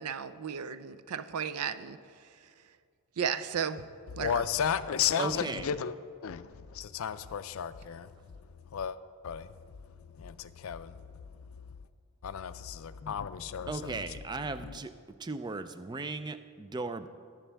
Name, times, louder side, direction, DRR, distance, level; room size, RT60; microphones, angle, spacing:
voice 1, 0.0-2.0 3.2-3.8 4.2-4.4, right 7 dB, 85° right, 0.5 m, -34 dB
voice 2, 4.1-5.9 6.2-8.1 8.7-9.0 9.2-9.5 10.2-11.0 12.2-14.2 14.6-14.8, left 8 dB, 65° left, 0.4 m, -33 dB
voice 3, 5.2-5.7 13.7-14.9 15.2-17.1, right 3 dB, 20° right, 0.3 m, -36 dB
19.5 x 7.1 x 3.4 m
head